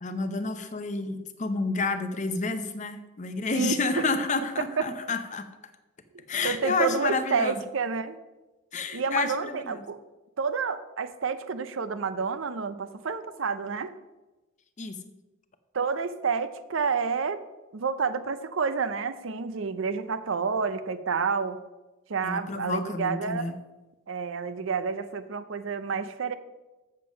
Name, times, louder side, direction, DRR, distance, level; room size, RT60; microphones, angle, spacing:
voice 1, 0.0-5.5 6.3-7.6 8.7-9.8 14.8-15.0 22.2-23.5, left 3 dB, 35° left, 9 dB, 0.7 m, -30 dB
voice 2, 3.5-4.0 4.8-4.9 6.4-8.2 8.9-10.0 10.4-13.9 15.7-17.4 17.7-21.6 22.1-23.4 24.1-26.3, right 5 dB, 65° right, 12 dB, 0.6 m, -29 dB
7.6 x 7.3 x 5.2 m, 1.1 s
head